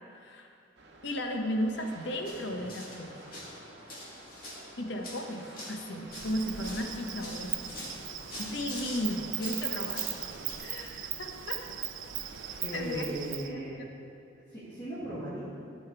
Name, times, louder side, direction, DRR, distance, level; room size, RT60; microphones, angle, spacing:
voice 1, 0.1-0.5 1.0-3.2 4.8-7.7 8.4-10.1 10.6-11.6 12.7-13.1 13.5-13.8, equal, 65° left, 4 dB, 1.0 m, -35 dB
sound 1, 0.8-13.0, right 2 dB, 60° right, 0.9 m, -53 dB
sound 2, 2.2-10.6, left 1 dB, 50° left, 2.2 m, -45 dB
Insect, 6.1-13.5, right 12 dB, 80° right, 0.5 m, -38 dB
voice 2, 12.6-13.8 14.5-15.4, right 1 dB, 20° left, -12 dB, 1.9 m, -37 dB
13.5 x 5.6 x 4.7 m, 2.6 s
head